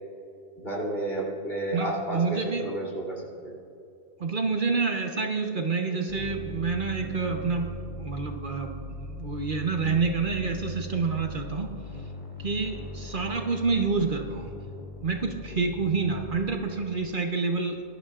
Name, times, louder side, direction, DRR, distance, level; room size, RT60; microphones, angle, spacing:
voice 1, 0.6-3.5, right 1 dB, 55° left, -5 dB, 3.1 m, -31 dB
voice 2, 1.7-2.7 4.2-11.7 12.4-14.5 15.0-17.8, right 4 dB, 50° right, 3 dB, 1.1 m, -28 dB
sound 1, 6.1-16.6, equal, 30° left, 1.5 m, -39 dB
21.0 x 12.0 x 2.5 m, 2.7 s
omnidirectional pair, 1.2 m